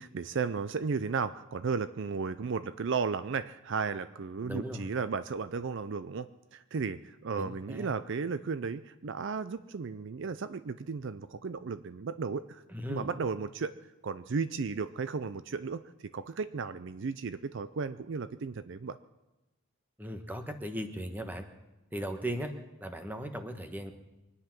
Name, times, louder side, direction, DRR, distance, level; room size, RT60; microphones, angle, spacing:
voice 1, 0.0-12.6 12.9-13.7 14.0-15.8 16.1-19.0, right 5 dB, 55° right, 13 dB, 0.4 m, -34 dB
voice 2, 4.4-4.9 7.4-7.9 12.7-13.1 20.0-21.5 21.9-22.5 22.8-23.9, equal, 10° right, 6 dB, 1.1 m, -37 dB
24.0 x 9.8 x 6.0 m, 1.0 s
head